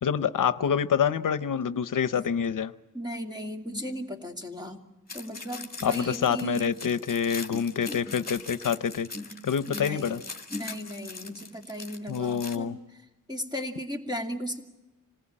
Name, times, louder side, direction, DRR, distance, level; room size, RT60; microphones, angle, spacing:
voice 1, 0.0-2.7 5.8-9.1 9.4-10.2 12.1-12.8, left 7 dB, 75° left, 13 dB, 0.8 m, -27 dB
voice 2, 2.9-4.8 5.1-6.7 7.5-8.1 9.1-9.4 9.7-10.2 10.5-13.0 13.3-14.6, equal, 15° right, 3 dB, 2.5 m, -36 dB
sound 1, 5.1-12.6, left 4 dB, 30° left, 2.2 m, -42 dB
26.5 x 19.5 x 8.7 m, 1.0 s
wide cardioid pair, 140°, 32 cm